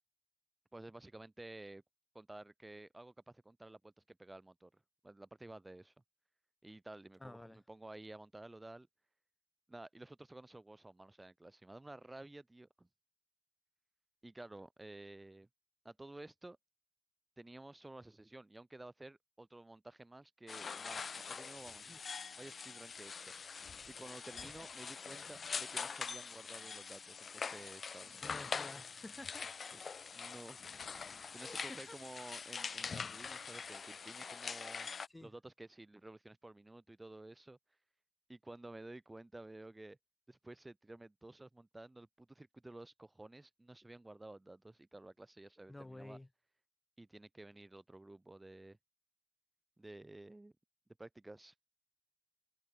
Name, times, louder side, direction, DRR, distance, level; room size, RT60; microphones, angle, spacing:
voice 1, 0.7-1.8 2.1-5.9 6.6-8.9 9.7-12.9 14.2-15.5 15.8-16.6 17.4-22.0 22.4-23.3 23.9-28.6 29.7-29.8 30.1-30.6 31.3-34.9 35.2-37.6 38.3-40.0 40.3-46.2 47.0-48.8 49.8-50.5 51.0-51.5, right 2 dB, 20° right, 3.1 m, -53 dB
voice 2, 7.2-7.6 21.9-22.0 24.4-24.5 28.2-29.6 31.4-32.0 35.1-35.3 45.7-46.3, left 1 dB, 20° left, 1.3 m, -51 dB
sound 1, 20.5-35.1, left 5 dB, 55° left, 0.4 m, -44 dB
supercardioid pair, 45°, 0 cm